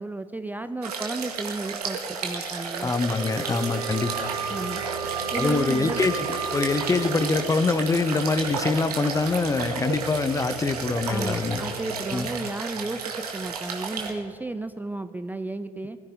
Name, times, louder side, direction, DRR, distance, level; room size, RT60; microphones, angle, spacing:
voice 1, 0.0-2.9 4.5-4.8 5.3-6.0 11.1-16.0, right 2 dB, 10° right, 11 dB, 0.5 m, -33 dB
sound 1, 0.8-14.1, right 5 dB, 80° right, 1.9 m, -32 dB
voice 2, 2.8-4.3 5.3-11.6 12.1-12.3, left 4 dB, 15° left, 14 dB, 0.8 m, -25 dB
sound 2, 2.9-7.7, right 9 dB, 25° right, 2.2 m, -34 dB
sound 3, 3.7-11.9, left 1 dB, 85° left, 1.6 m, -41 dB
21.0 x 14.0 x 3.5 m, 2.7 s
figure-of-eight pair, 65°, 20 cm